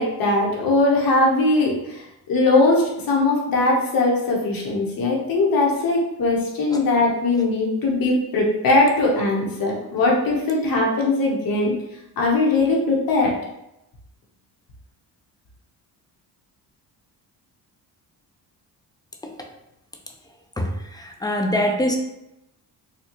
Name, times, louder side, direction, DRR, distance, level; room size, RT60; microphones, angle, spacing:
voice 1, 0.0-11.8 12.2-13.3, left 2 dB, 60° left, -2 dB, 1.1 m, -20 dB
voice 2, 20.6-22.0, equal, 10° left, 3 dB, 0.4 m, -24 dB
4.2 x 2.3 x 3.0 m, 0.86 s
cardioid pair, 120°, 38 cm